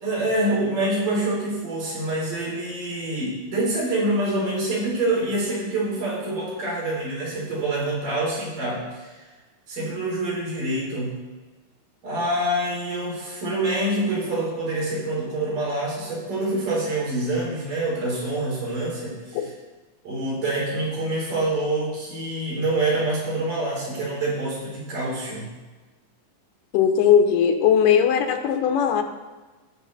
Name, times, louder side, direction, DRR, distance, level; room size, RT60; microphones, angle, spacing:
voice 1, 0.0-9.1 9.7-11.2 12.0-19.5 20.0-25.5, right 2 dB, 70° right, -5 dB, 5.6 m, -26 dB
voice 2, 26.7-29.0, left 8 dB, 80° left, 6 dB, 2.4 m, -19 dB
17.0 x 7.0 x 4.1 m, 1.3 s
omnidirectional pair, 3.9 m